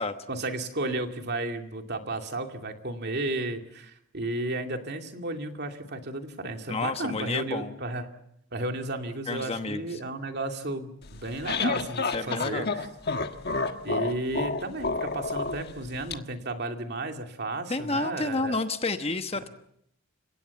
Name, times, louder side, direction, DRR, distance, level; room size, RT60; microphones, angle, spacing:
voice 1, 0.3-8.1 8.5-12.9 13.8-18.6 19.3-19.4, right 2 dB, 55° right, 4 dB, 2.5 m, -33 dB
voice 2, 6.7-7.7 9.3-10.0 12.1-12.7 17.7-19.5, left 3 dB, 30° left, 8 dB, 1.1 m, -30 dB
sound 1, 11.1-16.1, left 4 dB, 50° left, 1.3 m, -30 dB
29.5 x 17.0 x 7.1 m, 0.74 s
head